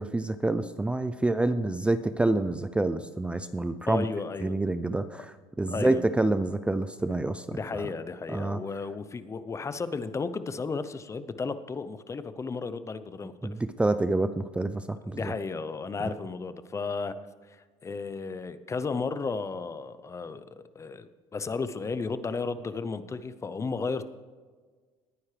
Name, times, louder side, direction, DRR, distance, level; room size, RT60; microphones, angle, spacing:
voice 1, 0.0-4.1 4.4-7.9 8.3-8.6 13.4-15.3, right 2 dB, 10° right, 12 dB, 0.4 m, -28 dB
voice 2, 3.9-4.6 5.7-6.0 7.5-13.5 15.1-17.1 17.5-17.6 17.8-24.0, left 4 dB, 25° left, 13 dB, 0.7 m, -34 dB
19.5 x 9.5 x 3.3 m, 1.5 s
supercardioid pair, 95°, 12 cm